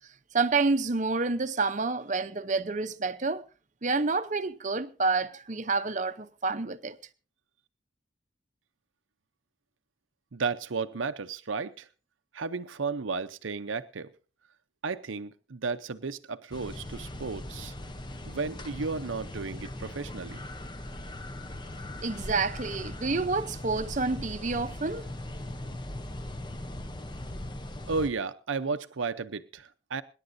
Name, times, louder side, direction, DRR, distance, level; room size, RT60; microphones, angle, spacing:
voice 1, 0.3-3.4 3.8-7.0 22.0-25.1, right 3 dB, 40° right, 0.7 m, -28 dB
voice 2, 10.3-11.9 12.3-14.1 14.8-17.7 18.3-20.4 27.9-30.0, right 4 dB, 85° right, 0.7 m, -33 dB
sound 1, 16.5-28.1, left 1 dB, 25° left, 0.8 m, -39 dB
26.0 x 11.0 x 2.7 m
head